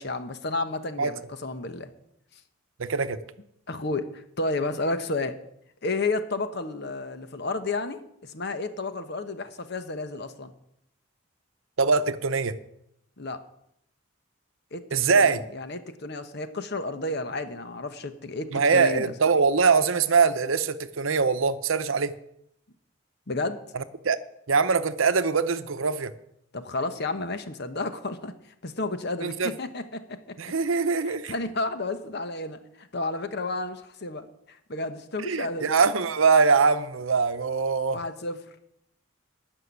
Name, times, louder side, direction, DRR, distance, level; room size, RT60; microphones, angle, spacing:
voice 1, 0.0-1.9 3.7-5.4 5.8-10.5 13.2-13.4 14.7-19.1 23.3-23.6 26.5-28.3 28.6-30.4 31.0-35.7 37.9-38.5, left 2 dB, 50° left, 10 dB, 1.1 m, -32 dB
voice 2, 2.8-3.2 11.8-12.6 14.9-15.4 18.5-22.1 23.7-24.2 24.5-26.1 29.2-29.5 30.4-31.3 35.2-38.0, right 5 dB, 75° right, 12 dB, 0.8 m, -23 dB
13.0 x 5.9 x 9.6 m, 0.77 s
head